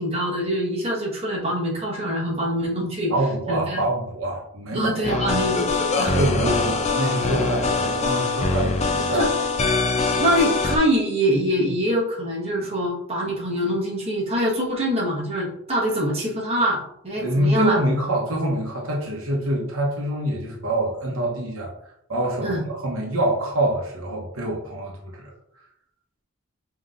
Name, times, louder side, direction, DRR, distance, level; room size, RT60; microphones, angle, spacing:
voice 1, 0.0-3.1 3.5-3.8 4.7-5.7 6.0-6.2 9.1-9.2 10.2-17.8 22.4-22.6, equal, 30° right, -5 dB, 1.3 m, -24 dB
voice 2, 3.1-5.2 6.1-9.4 17.2-25.3, right 1 dB, 75° right, -2 dB, 1.0 m, -25 dB
sound 1, 5.0-10.8, left 3 dB, 30° left, 0.4 m, -23 dB
5.5 x 3.0 x 2.5 m, 0.73 s
head